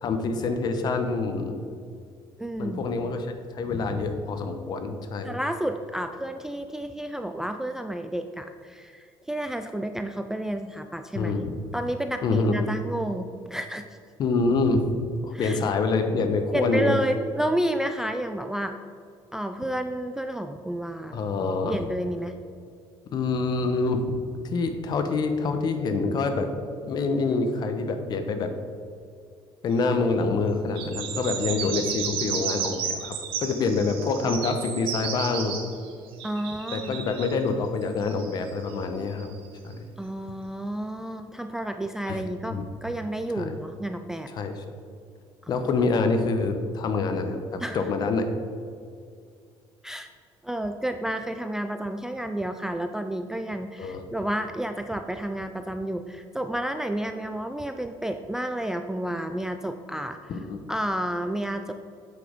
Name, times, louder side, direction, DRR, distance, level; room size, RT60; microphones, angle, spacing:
voice 1, 0.0-1.6 2.6-3.3 3.5-5.4 11.1-11.6 12.2-12.6 14.2-14.9 15.2-17.0 21.1-21.8 23.1-24.2 24.5-26.5 26.8-28.5 29.6-35.6 36.7-39.3 39.6-39.9 42.1-42.2 42.5-42.6 43.3-43.6 44.3-44.6 45.5-48.3 53.8-54.0 60.3-60.6, left 3 dB, 45° left, 7 dB, 1.0 m, -26 dB
voice 2, 2.4-2.9 5.2-11.5 11.7-13.9 15.3-15.6 16.5-18.7 19.3-21.2 21.7-22.3 36.2-37.0 40.0-44.3 45.4-45.6 47.6-47.9 49.8-50.1 50.4-60.3 60.7-61.7, right 1 dB, 5° right, 7 dB, 0.3 m, -31 dB
sound 1, 30.8-37.4 38.0-39.5, right 7 dB, 65° right, 1.4 m, -33 dB
8.3 x 6.4 x 5.1 m, 2.3 s
cardioid pair, 150°, 10 cm